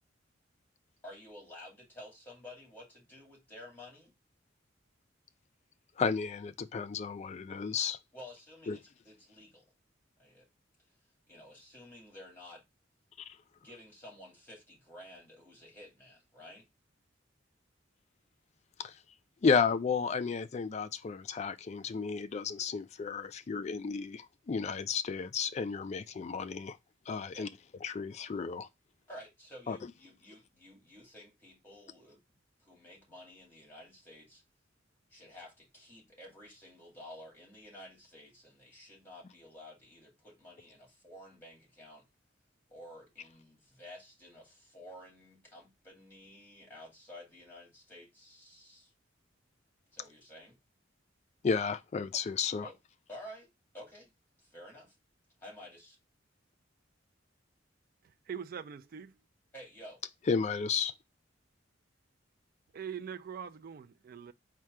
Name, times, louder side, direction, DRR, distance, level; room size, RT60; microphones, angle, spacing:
voice 1, 1.0-4.1 8.1-9.6 10.2-10.5 11.3-12.6 13.6-16.7 27.2-27.5 29.1-34.4 35.1-42.1 42.7-48.9 49.9-50.6 52.6-52.8 53.1-54.1 54.4-54.9 55.4-56.0 59.5-60.0, left 1 dB, 10° left, 2.2 m, -52 dB
voice 2, 6.0-8.0 8.7-8.8 18.8-18.9 19.4-26.8 27.1-27.5 27.8-28.7 29.7-29.8 51.4-52.7 60.3-60.9, left 5 dB, 35° left, 0.3 m, -32 dB
voice 3, 58.0-59.2 62.7-64.3, right 7 dB, 50° right, 0.3 m, -43 dB
4.3 x 2.2 x 4.7 m
head